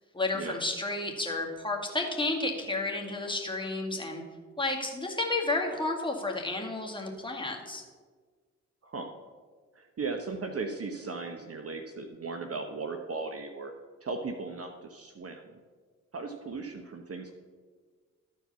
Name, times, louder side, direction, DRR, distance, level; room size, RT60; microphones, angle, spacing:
voice 1, 0.1-4.2 4.6-7.8, left 2 dB, 10° left, 0 dB, 2.1 m, -31 dB
voice 2, 9.7-13.7 14.0-15.6 16.1-17.3, right 4 dB, 35° right, 5 dB, 1.0 m, -37 dB
13.0 x 4.7 x 5.6 m, 1.5 s
hypercardioid pair, 40°, 40 cm